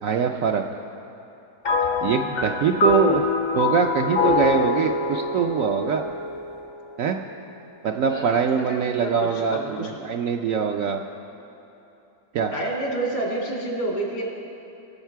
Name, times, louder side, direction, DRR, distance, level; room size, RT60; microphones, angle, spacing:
voice 1, 0.0-0.6 2.0-3.2 3.5-6.1 7.0-7.2 7.8-11.0 12.3-12.5, right 7 dB, 70° right, 4 dB, 0.8 m, -23 dB
sound 1, 1.6-7.2, left 4 dB, 55° left, 0.6 m, -24 dB
voice 2, 8.7-9.9 12.5-14.2, right 2 dB, 80° left, -2 dB, 2.8 m, -29 dB
21.5 x 7.3 x 4.5 m, 2.9 s
omnidirectional pair, 1.8 m